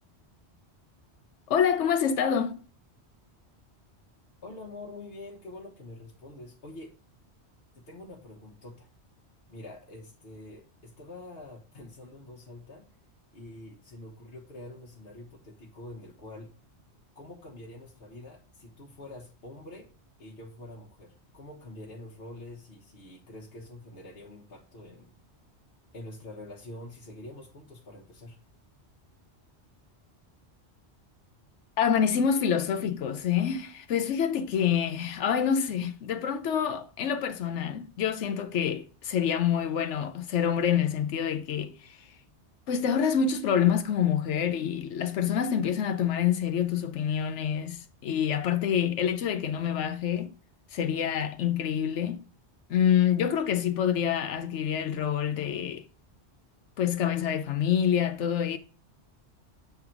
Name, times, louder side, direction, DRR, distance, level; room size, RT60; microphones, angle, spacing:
voice 1, 1.5-2.6 31.8-42.1 42.7-50.3 50.7-52.3 52.7-55.9 56.8-58.6, left 8 dB, 85° left, 1.0 m, -27 dB
voice 2, 4.4-6.9 7.7-8.9 9.5-12.9 13.3-16.5 17.1-19.9 20.2-25.1 25.9-28.4, left 2 dB, 60° left, 1.5 m, -46 dB
7.8 x 3.9 x 4.4 m
omnidirectional pair, 1.2 m